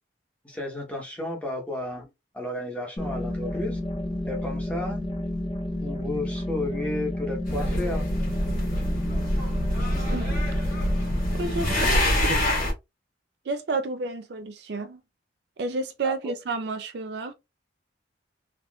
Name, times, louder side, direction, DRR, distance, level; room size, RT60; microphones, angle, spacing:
voice 1, 0.4-3.8 4.3-5.4 5.8-8.0 16.0-16.1, left 2 dB, 5° left, 1.0 m, -33 dB
sound 1, 3.0-11.7, left 1 dB, 25° left, 0.5 m, -31 dB
sound 2, 7.4-12.7, left 1 dB, 45° left, 1.6 m, -25 dB
voice 2, 11.4-12.5 13.5-15.0 15.6-17.3, right 3 dB, 55° right, 0.4 m, -31 dB
3.5 x 2.4 x 2.3 m
head